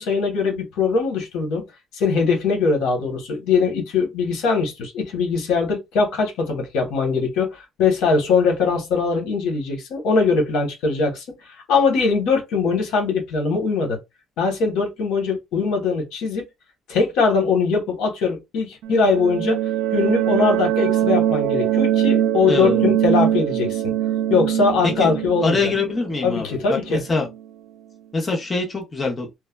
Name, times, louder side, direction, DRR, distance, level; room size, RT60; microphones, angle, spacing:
voice 1, 0.0-1.6 1.9-11.3 11.7-14.0 14.4-16.5 16.9-19.6 19.9-23.9 24.3-25.7 26.2-27.0, left 4 dB, 90° left, 1.1 m, -21 dB
sound 1, 18.8-27.4, right 11 dB, 85° right, 0.5 m, -22 dB
voice 2, 22.5-22.9 24.8-25.1 25.4-27.3 28.1-29.3, left 3 dB, 20° left, 0.6 m, -24 dB
3.2 x 2.1 x 2.2 m
cardioid pair, 170°, 0 cm